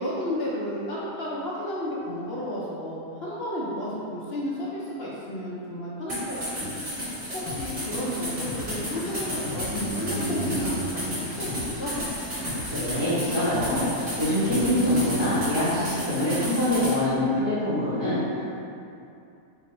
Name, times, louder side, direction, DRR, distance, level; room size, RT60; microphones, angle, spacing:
voice 1, 0.0-6.8 7.3-11.9, left 1 dB, 65° left, -7 dB, 0.6 m, -32 dB
sound 1, 6.1-17.0, equal, 40° right, 1.8 m, -33 dB
sound 2, 6.6-17.2, right 1 dB, 80° right, 1.9 m, -38 dB
sound 3, 7.5-15.5, left 2 dB, 90° left, 1.2 m, -38 dB
voice 2, 12.7-18.4, left 1 dB, 20° right, -15 dB, 0.8 m, -25 dB
3.6 x 2.6 x 4.1 m, 2.6 s
omnidirectional pair, 1.7 m